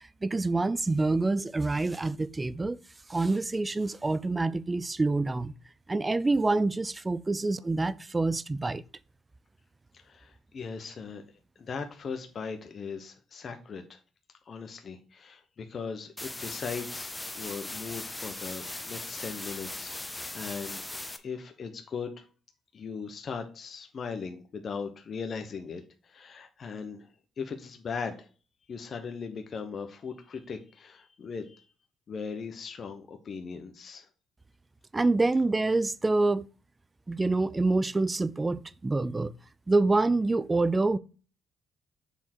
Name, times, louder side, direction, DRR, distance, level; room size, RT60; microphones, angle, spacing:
voice 1, 0.2-2.8 3.1-5.5 5.9-8.8 34.9-36.4 37.1-39.3 39.7-41.0, right 3 dB, 20° right, 0.4 m, -26 dB
voice 2, 10.0-11.2 11.6-14.0 14.5-17.1 17.4-20.8 21.2-22.2 22.7-27.1 27.4-28.3 28.7-31.7 32.1-34.1, left 5 dB, 50° left, 0.9 m, -39 dB
sound 1, 16.2-21.2, left 2 dB, 15° left, 0.7 m, -39 dB
7.0 x 3.7 x 4.3 m
cardioid pair, 90°, 0 cm